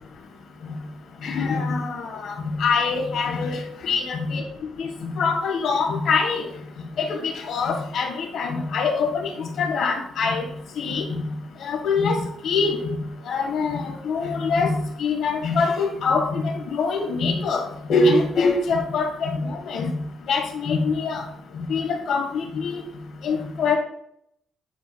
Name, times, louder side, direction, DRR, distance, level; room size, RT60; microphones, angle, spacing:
voice 1, 1.2-4.4 4.8-6.5 7.0-10.5 10.8-11.2 11.6-12.8 13.3-14.7 15.0-17.6 17.9-19.9 20.3-21.2 21.6-22.8 23.2-23.8, left 4 dB, 70° left, 3 dB, 1.4 m, -24 dB
9.8 x 4.5 x 2.3 m, 0.74 s
cardioid pair, 90°, 0 cm